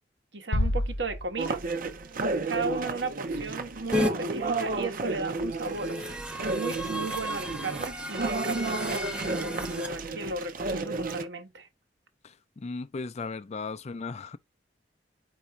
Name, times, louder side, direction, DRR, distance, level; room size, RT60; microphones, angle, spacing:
voice 1, 0.3-1.6 2.5-6.0 6.5-11.7, right 3 dB, 80° right, 1.1 m, -35 dB
sound 1, 0.5-2.1, left 1 dB, 75° left, 0.8 m, -30 dB
sound 2, 1.4-11.2, right 3 dB, 50° right, 0.6 m, -32 dB
sound 3, 3.9-4.1 5.5-9.9, equal, 5° right, 0.8 m, -33 dB
voice 2, 12.2-14.4, left 4 dB, 40° left, 0.4 m, -36 dB
4.7 x 2.6 x 4.3 m
head